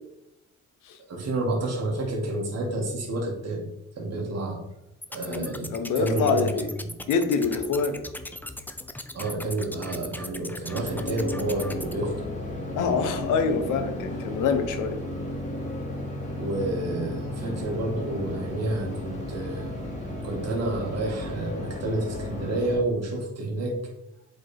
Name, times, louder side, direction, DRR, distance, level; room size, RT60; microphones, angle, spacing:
voice 1, 1.1-3.6 4.0-4.6 5.1-5.7 6.0-6.5 9.1-12.1 16.4-19.7 20.2-23.7, right 2 dB, 55° right, -1 dB, 2.1 m, -29 dB
sound 1, 5.0-11.9, left 1 dB, 5° left, 0.5 m, -39 dB
voice 2, 5.3-6.7 7.1-8.0 12.7-15.0, left 5 dB, 85° left, 8 dB, 0.9 m, -25 dB
sound 2, 10.7-22.8, left 1 dB, 25° left, 2.2 m, -34 dB
7.9 x 4.3 x 3.5 m, 0.89 s
cardioid pair, 90°, 30 cm